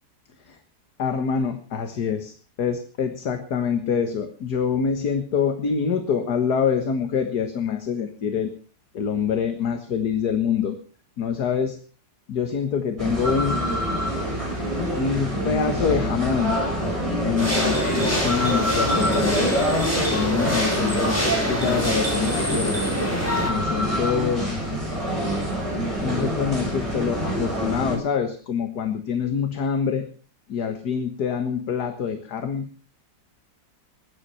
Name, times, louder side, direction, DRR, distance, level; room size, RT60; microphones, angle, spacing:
voice 1, 1.0-8.5 8.9-10.8 11.2-11.8 12.3-13.7 15.0-16.6 17.2-19.7 20.1-21.2 21.5-22.8 23.5-24.6 26.0-30.1 30.5-32.7, left 7 dB, 60° left, 7 dB, 2.0 m, -25 dB
sound 1, 13.0-28.0, equal, 15° right, 6.3 m, -26 dB
sound 2, 17.4-23.5, equal, 10° left, 5.0 m, -26 dB
20.0 x 11.0 x 5.7 m, 0.39 s
omnidirectional pair, 1.9 m